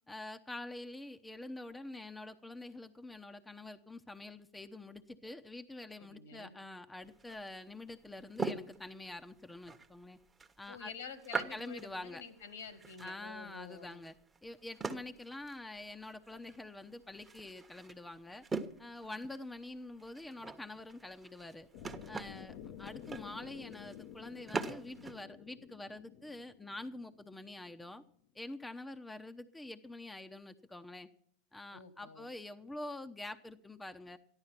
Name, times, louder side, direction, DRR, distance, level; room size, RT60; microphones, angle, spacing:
voice 1, 0.1-10.2 10.6-10.9 11.5-12.2 13.0-14.1 14.4-18.5 18.8-21.7 22.1-28.0 28.3-31.1 31.5-34.2, left 2 dB, 10° left, 8 dB, 0.9 m, -46 dB
voice 2, 6.0-6.5 10.7-14.1 31.7-32.3, left 5 dB, 80° left, 11 dB, 2.4 m, -49 dB
sound 1, 7.0-25.2, right 4 dB, 15° right, 1.2 m, -44 dB
sound 2, 21.7-27.8, left 10 dB, 60° left, 0.9 m, -51 dB
13.5 x 11.5 x 5.9 m, 0.64 s
hypercardioid pair, 95°, 0 cm